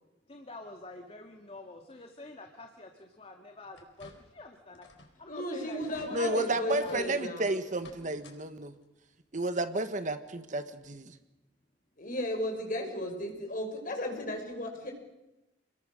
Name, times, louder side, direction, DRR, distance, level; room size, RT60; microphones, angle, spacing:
voice 1, 0.3-4.9 5.2-7.2, left 2 dB, 35° left, 4 dB, 2.1 m, -46 dB
sound 1, 3.7-4.4 4.7-5.2 5.5-5.6 5.8-6.1 6.7-7.1 7.7-8.4 8.7-8.8 10.2-10.3 10.8-10.9, left 3 dB, 85° left, 4.4 m, -54 dB
voice 2, 5.3-7.6 12.0-14.9, left 1 dB, 50° left, 3 dB, 6.0 m, -34 dB
voice 3, 6.1-8.7 9.3-11.1, right 2 dB, 45° right, 10 dB, 1.5 m, -32 dB
29.0 x 21.5 x 6.6 m, 0.96 s
head